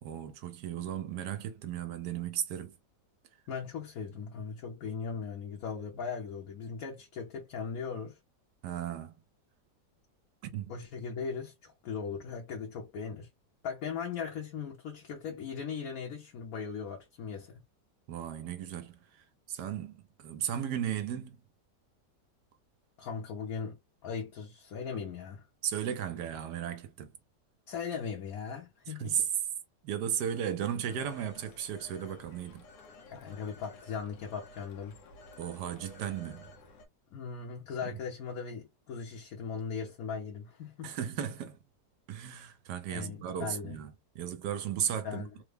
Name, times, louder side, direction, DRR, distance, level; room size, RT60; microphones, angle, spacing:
voice 1, 0.0-2.7 8.6-9.1 10.4-10.8 18.1-21.4 25.6-27.1 28.9-29.2 29.8-32.7 35.4-36.5 37.8-37.9 40.8-41.6 42.1-45.2, right 9 dB, 75° right, 1.1 m, -35 dB
voice 2, 3.5-8.2 10.7-13.3 13.6-17.6 23.0-23.8 24.0-25.4 27.7-29.3 33.1-35.0 37.1-41.0 42.9-43.8 45.0-45.3, left 6 dB, 65° left, 1.1 m, -38 dB
Telephone, 30.9-36.9, left 2 dB, 80° left, 1.4 m, -53 dB
3.4 x 2.0 x 3.2 m
omnidirectional pair, 1.9 m